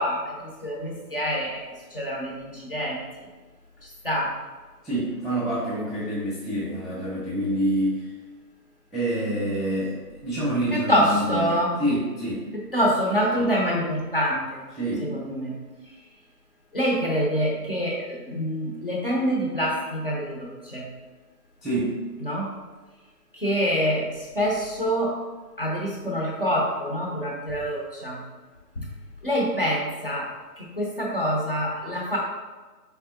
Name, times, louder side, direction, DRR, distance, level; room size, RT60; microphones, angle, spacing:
voice 1, 0.0-1.6 1.9-3.0 4.0-4.4 10.7-11.8 12.5-14.6 15.0-15.6 16.7-20.9 22.2-22.5 23.3-25.2 25.6-28.2 28.8-28.9 29.2-32.2, equal, 35° left, -3 dB, 0.7 m, -26 dB
voice 2, 4.8-8.1 8.9-12.4 13.4-13.5 14.8-15.1 21.6-22.0, right 1 dB, ahead, -10 dB, 0.4 m, -27 dB
4.3 x 3.4 x 2.5 m, 1.3 s
figure-of-eight pair, 155°, 48 cm